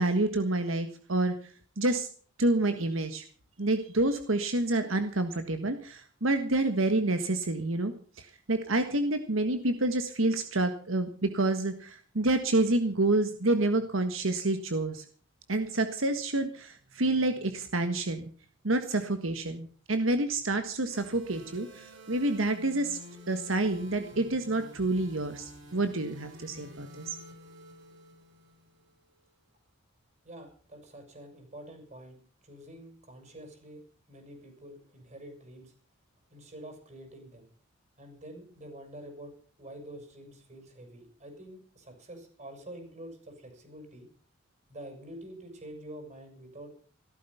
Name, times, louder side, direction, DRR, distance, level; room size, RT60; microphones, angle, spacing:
voice 1, 0.0-1.3 1.8-2.1 2.4-3.2 3.6-15.0 15.5-18.3 18.6-23.0 23.3-27.2, right 2 dB, 85° right, 8 dB, 1.6 m, -28 dB
sound 1, 20.9-28.9, equal, 65° right, 7.1 m, -50 dB
voice 2, 30.2-33.8 34.1-35.7 36.3-37.5 38.0-44.1 44.7-46.7, right 1 dB, 35° right, 5 dB, 6.6 m, -47 dB
16.0 x 13.5 x 5.7 m, 0.43 s
head